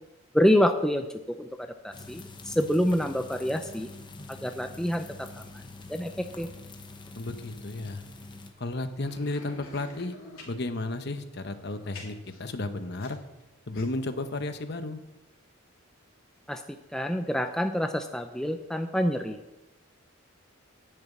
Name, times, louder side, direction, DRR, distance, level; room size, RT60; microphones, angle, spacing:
voice 1, 0.3-1.1 1.4-3.9 4.3-5.3 5.5-5.6 5.9-6.5 16.5-16.6 16.9-19.4, equal, 5° left, 6 dB, 0.5 m, -27 dB
sound 1, 1.9-8.5, left 2 dB, 20° left, 0.9 m, -45 dB
voice 2, 7.2-8.0 8.6-10.1 10.5-13.2 13.7-15.0, left 2 dB, 50° left, 9 dB, 0.9 m, -33 dB
sound 2, 9.0-10.5 11.4-13.4 13.7-13.8, left 3 dB, 80° left, 3.3 m, -48 dB
10.5 x 7.1 x 8.3 m, 0.97 s
head